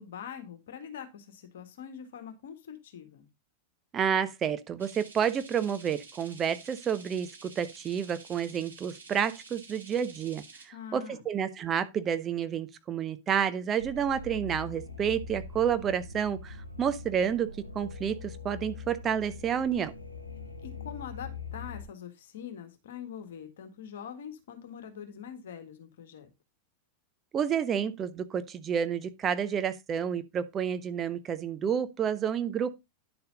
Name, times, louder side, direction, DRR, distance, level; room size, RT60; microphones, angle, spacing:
voice 1, 0.0-3.3 10.7-11.2 20.6-26.3, left 8 dB, 60° left, 1.8 m, -43 dB
voice 2, 3.9-17.5 17.7-19.9 27.3-32.7, right 8 dB, 25° right, 1.1 m, -30 dB
sound 1, 4.8-10.7, right 4 dB, 75° right, 6.2 m, -50 dB
sound 2, 13.8-21.9, left 3 dB, 85° left, 1.4 m, -42 dB
10.5 x 6.8 x 4.0 m
figure-of-eight pair, 90°, 0 cm